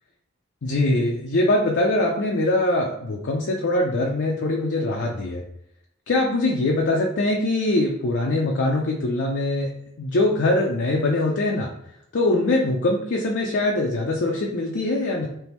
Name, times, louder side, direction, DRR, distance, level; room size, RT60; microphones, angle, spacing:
voice 1, 0.6-5.4 6.1-9.7 10.0-11.7 12.1-15.3, left 2 dB, 55° left, 0 dB, 0.5 m, -22 dB
3.4 x 3.0 x 3.0 m, 0.75 s
head